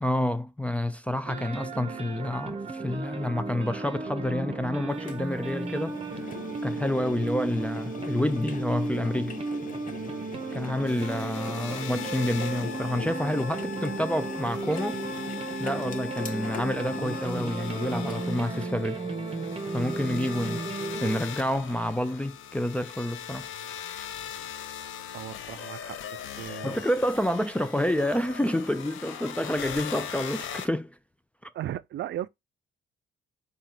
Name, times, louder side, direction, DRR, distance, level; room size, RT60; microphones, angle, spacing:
voice 1, 0.0-6.0 6.6-9.4 10.5-15.0 15.6-19.0 19.7-20.6 21.0-23.5 26.6-31.0, left 1 dB, 5° left, 0.3 m, -28 dB
sound 1, 1.2-21.2, right 3 dB, 30° right, 0.7 m, -35 dB
Engine, 5.1-18.5, left 6 dB, 40° left, 0.8 m, -43 dB
sound 2, 10.9-30.7, left 8 dB, 80° left, 0.6 m, -40 dB
voice 2, 25.1-26.8 31.5-32.3, right 12 dB, 65° right, 0.4 m, -36 dB
4.0 x 2.4 x 4.2 m
cardioid pair, 90°, 20 cm